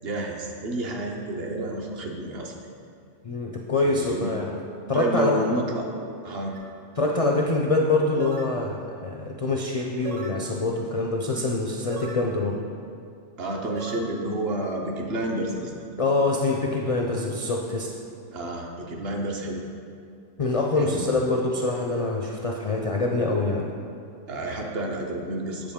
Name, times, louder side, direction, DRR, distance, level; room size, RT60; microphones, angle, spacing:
voice 1, 0.0-2.6 3.8-4.3 4.9-5.9 6.2-6.6 13.4-15.7 18.3-19.6 20.8-21.0 24.3-25.7, right 1 dB, 60° right, 1 dB, 1.0 m, -30 dB
voice 2, 3.2-4.5 4.9-5.5 7.0-12.6 16.0-17.9 20.4-23.6, left 2 dB, 50° left, 0 dB, 0.4 m, -25 dB
sound 1, 6.5-6.7 8.2-8.6 10.0-10.4 11.9-12.3 13.8-14.1, right 3 dB, 80° right, 1.0 m, -38 dB
7.6 x 6.8 x 3.6 m, 2.4 s
omnidirectional pair, 1.2 m